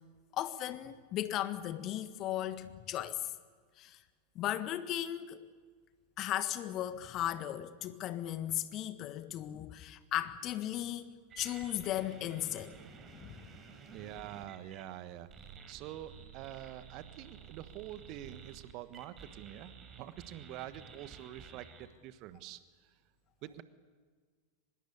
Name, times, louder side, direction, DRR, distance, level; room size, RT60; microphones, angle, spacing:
voice 1, 0.3-3.3 3.8-4.0 4.3-5.5 6.2-12.8 13.1-13.3, left 12 dB, 35° left, 1.5 m, -36 dB
sound 1, 11.3-14.8 15.3-21.9, right 6 dB, 25° right, 4.0 m, -52 dB
voice 2, 13.9-22.9 23.4-23.6, right 13 dB, 40° right, 1.4 m, -46 dB
24.5 x 21.5 x 8.5 m
figure-of-eight pair, 90°, 0 cm